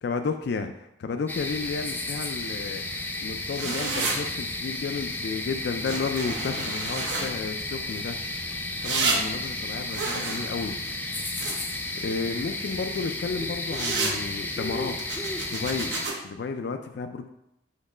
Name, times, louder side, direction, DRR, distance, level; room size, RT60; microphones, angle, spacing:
voice 1, 0.0-2.9 3.2-8.5 8.8-10.8 12.0-16.0 16.2-17.3, left 4 dB, 60° left, 7 dB, 0.3 m, -32 dB
sound 1, 1.3-16.1, left 2 dB, 10° left, 0.5 m, -33 dB
sound 2, 3.5-4.2 5.8-7.3 8.8-9.2 9.9-11.8 13.7-14.2 14.9-16.1, right 4 dB, 75° right, 1.0 m, -30 dB
6.5 x 3.1 x 4.8 m, 0.83 s
head